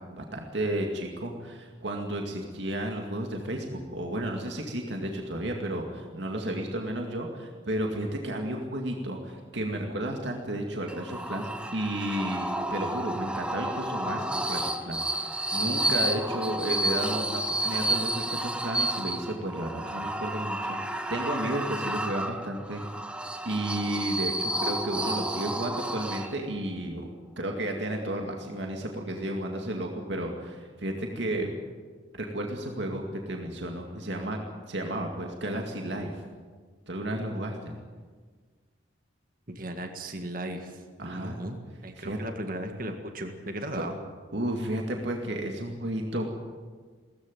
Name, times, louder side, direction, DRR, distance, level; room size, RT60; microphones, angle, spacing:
voice 1, 0.1-22.8 23.4-31.5 32.1-34.4 34.7-36.1 36.9-37.7 41.0-41.4 42.0-42.2 43.7-43.9 44.3-46.3, right 1 dB, 65° right, 2 dB, 2.3 m, -32 dB
sound 1, 10.9-26.6, right 1 dB, 5° right, 0.9 m, -31 dB
voice 2, 39.5-41.6 41.8-44.0, right 1 dB, 45° right, 5 dB, 1.8 m, -36 dB
19.0 x 14.5 x 9.3 m, 1.5 s
head